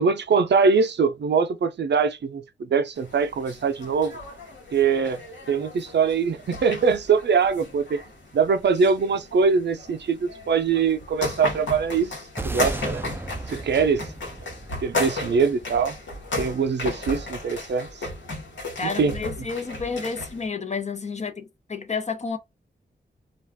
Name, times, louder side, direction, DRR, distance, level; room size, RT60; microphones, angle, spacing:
voice 1, 0.0-4.2 4.7-5.2 5.5-8.0 8.3-12.1 12.4-13.0 13.5-14.0 14.8-16.0 16.4-17.9 18.8-19.2, right 5 dB, 70° right, 0.5 m, -22 dB
sound 1, 3.0-20.5, left 2 dB, 85° left, 1.1 m, -35 dB
sound 2, 12.4-16.8, right 2 dB, 10° right, 0.3 m, -36 dB
voice 2, 18.8-22.4, left 4 dB, 35° left, 0.7 m, -30 dB
2.4 x 2.3 x 3.4 m
wide cardioid pair, 80°, 19 cm